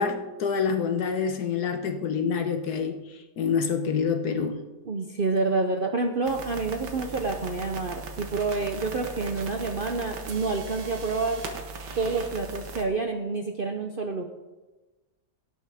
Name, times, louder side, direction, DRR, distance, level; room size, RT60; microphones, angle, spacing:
voice 1, 0.0-4.6, left 6 dB, 65° left, 6 dB, 1.5 m, -27 dB
voice 2, 4.9-11.4 12.0-14.3, right 3 dB, 50° right, 3 dB, 0.7 m, -28 dB
sound 1, 6.2-12.8, right 3 dB, 80° right, 1.8 m, -39 dB
17.0 x 7.6 x 3.5 m, 1.2 s
omnidirectional pair, 1.8 m